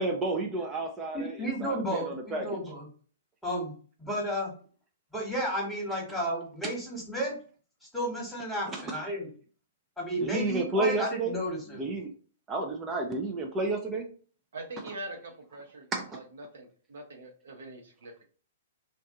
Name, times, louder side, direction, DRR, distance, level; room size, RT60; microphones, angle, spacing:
voice 1, 0.0-1.3 1.6-2.5 8.7-8.8 10.2-11.3 11.8-12.1 12.5-14.0 15.9-16.0, right 2 dB, 20° right, 2 dB, 0.5 m, -31 dB
voice 2, 1.1-2.9 3.4-3.7 4.0-4.5 5.1-7.4 7.9-9.3 10.0-11.9, right 1 dB, 5° left, -2 dB, 1.4 m, -32 dB
voice 3, 14.5-18.3, right 2 dB, 70° right, 2 dB, 0.9 m, -43 dB
2.6 x 2.3 x 3.7 m, 0.41 s
hypercardioid pair, 120°, 0 cm